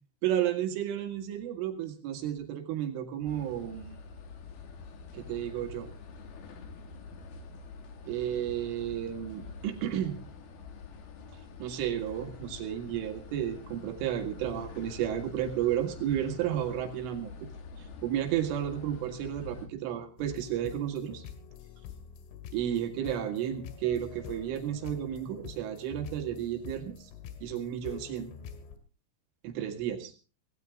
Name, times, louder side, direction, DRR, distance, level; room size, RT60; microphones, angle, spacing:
voice 1, 0.2-4.0 5.1-5.9 8.1-10.2 11.6-17.3 18.0-21.2 22.5-27.0 27.4-28.3 29.4-30.1, right 11 dB, 80° right, 7 dB, 4.4 m, -32 dB
sound 1, 3.3-19.7, left 4 dB, 60° left, 3.7 m, -46 dB
sound 2, 20.2-28.8, left 7 dB, 85° left, 4.3 m, -46 dB
17.5 x 17.5 x 3.6 m, 0.34 s
omnidirectional pair, 5.6 m